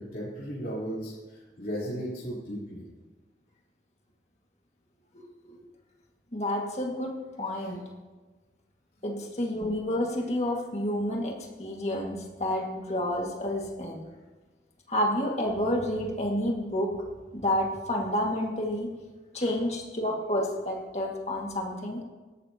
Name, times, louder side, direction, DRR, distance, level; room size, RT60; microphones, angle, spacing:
voice 1, 0.0-2.8 7.6-7.7 19.4-19.5, equal, 55° left, -8 dB, 3.8 m, -36 dB
voice 2, 5.1-5.6 6.3-7.1 7.4-7.8 9.0-14.1 14.9-16.9 17.3-18.9 19.3-22.0, left 1 dB, 40° left, 0 dB, 2.0 m, -29 dB
17.0 x 12.0 x 2.9 m, 1.3 s
head